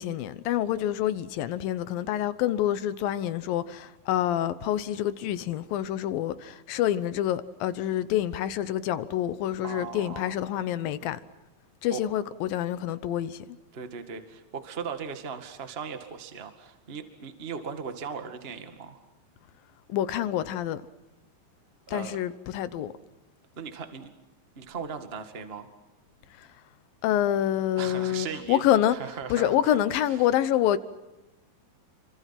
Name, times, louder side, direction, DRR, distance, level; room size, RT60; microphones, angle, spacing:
voice 1, 0.0-11.2 11.8-13.5 19.9-20.8 21.9-22.9 26.4-26.5 27.0-29.0 29.3-30.8, left 11 dB, 85° left, 2.8 m, -27 dB
voice 2, 9.6-10.4 11.9-12.0 13.7-19.0 21.9-22.2 23.5-24.1 24.5-25.7 27.8-28.6 28.9-29.6 30.1-30.2, right 6 dB, 25° right, 1.5 m, -38 dB
30.0 x 24.5 x 6.0 m
omnidirectional pair, 4.0 m